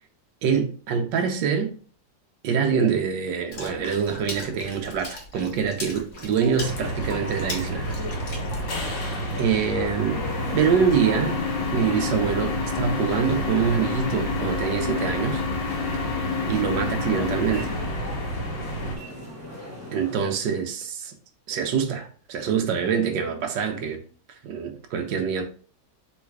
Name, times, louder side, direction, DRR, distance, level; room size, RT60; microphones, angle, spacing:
voice 1, 0.4-1.7 2.4-7.9 9.4-10.2 10.5-11.4 11.7-15.4 16.4-17.7 19.9-21.1 21.5-24.0 24.4-25.4, right 7 dB, 75° right, 1.5 m, -25 dB
Water / Splash splatter, 3.5-9.3, left 1 dB, 45° left, 1.1 m, -39 dB
sound 1, 6.1-20.3, equal, 15° right, 0.6 m, -41 dB
sound 2, 6.6-19.0, left 2 dB, 75° left, 1.9 m, -28 dB
3.7 x 3.2 x 4.6 m
omnidirectional pair, 2.0 m